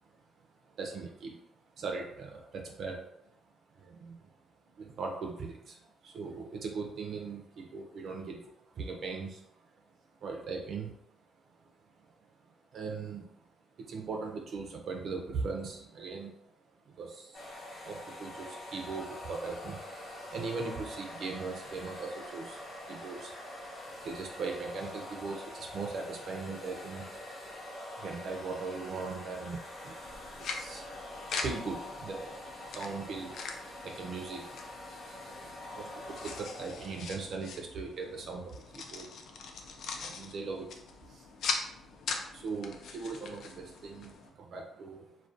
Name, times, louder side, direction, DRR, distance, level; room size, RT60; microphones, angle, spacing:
voice 1, 0.6-1.4 1.7-3.4 3.7-4.3 4.7-9.7 10.2-11.2 12.0-12.4 12.7-13.5 13.8-16.5 16.8-23.6 24.0-27.0 27.5-27.6 28.0-30.1 30.4-30.9 31.3-34.5 34.9-39.1 40.0-41.3 42.3-45.2, right 4 dB, 60° right, 2 dB, 0.4 m, -40 dB
sound 1, 17.3-37.0, left 1 dB, 50° left, 0.8 m, -45 dB
sound 2, 30.0-44.3, left 4 dB, 75° left, 0.3 m, -42 dB
2.4 x 2.1 x 2.5 m, 0.78 s
cardioid pair, 90°, 0 cm